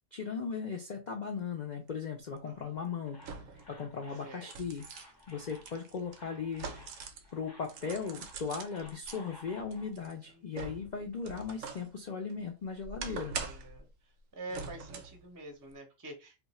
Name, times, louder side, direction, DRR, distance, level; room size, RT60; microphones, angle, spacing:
voice 1, 0.1-3.2 3.7-4.8 5.3-6.7 7.3-13.4, left 5 dB, 75° left, 2 dB, 0.4 m, -37 dB
sound 1, 1.9-2.0 3.2-3.7 4.2-7.3 7.6-9.2 9.7-11.9 12.3-13.8 14.5-15.2 15.6-15.7, right 5 dB, 70° right, 0.9 m, -43 dB
voice 2, 2.5-2.9 4.2-4.5 10.2-10.6 13.4-13.9 14.3-16.4, right 2 dB, 20° right, 2 dB, 0.5 m, -47 dB
sound 2, 3.1-9.9, left 2 dB, 20° left, 0.7 m, -56 dB
2.5 x 2.4 x 4.1 m, 0.28 s
omnidirectional pair, 1.5 m